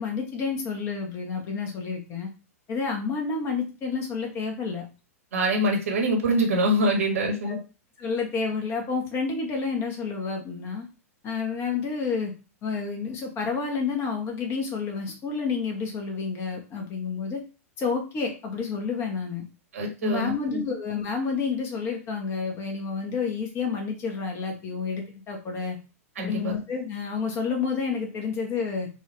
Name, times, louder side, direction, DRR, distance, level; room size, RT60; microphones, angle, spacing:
voice 1, 0.0-2.3 2.7-4.8 7.5-7.6 8.0-10.9 11.2-12.3 12.6-17.4 17.8-19.4 20.0-25.8 26.2-28.9, left 5 dB, 30° left, 2 dB, 1.4 m, -29 dB
voice 2, 5.3-7.6 19.7-20.3 26.2-26.5, right 1 dB, 65° right, 2 dB, 1.5 m, -24 dB
4.4 x 2.7 x 3.3 m, 0.32 s
figure-of-eight pair, 100°, 8 cm